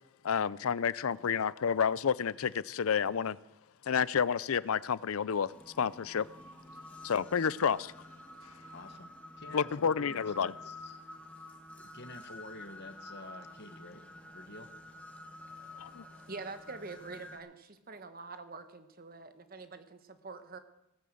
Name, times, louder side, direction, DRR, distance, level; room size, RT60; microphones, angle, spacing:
voice 1, 0.2-3.4 3.9-5.5 5.8-6.3 7.0-7.9 9.5-10.5 15.8-16.0, left 7 dB, 70° left, 20 dB, 0.5 m, -30 dB
sound 1, 5.5-17.4, left 1 dB, 5° left, 1.8 m, -50 dB
voice 2, 8.7-11.0 11.8-14.0 14.3-14.7, left 2 dB, 50° left, 9 dB, 1.3 m, -49 dB
voice 3, 15.5-20.6, right 3 dB, 40° right, 10 dB, 1.2 m, -46 dB
17.5 x 9.5 x 7.7 m, 0.90 s
head